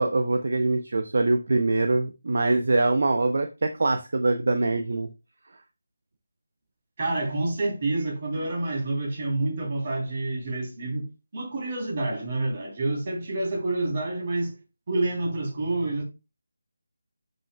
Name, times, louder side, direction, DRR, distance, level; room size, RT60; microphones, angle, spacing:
voice 1, 0.0-5.1, right 2 dB, 60° right, 0.8 m, -23 dB
voice 2, 7.0-11.0 11.3-14.6 14.9-16.0, right 2 dB, 40° right, 3.1 m, -28 dB
11.5 x 5.3 x 2.3 m
figure-of-eight pair, 165°, 0 cm